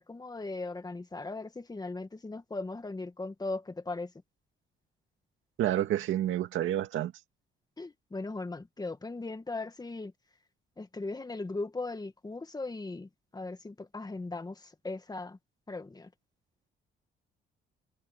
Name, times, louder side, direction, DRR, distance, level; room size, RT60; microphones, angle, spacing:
voice 1, 0.0-4.1 7.8-10.1 10.8-15.4 15.7-16.1, left 3 dB, 20° left, 2.2 m, -38 dB
voice 2, 5.6-7.1, right 12 dB, 80° right, 2.3 m, -29 dB
cardioid pair, 90°, 20 cm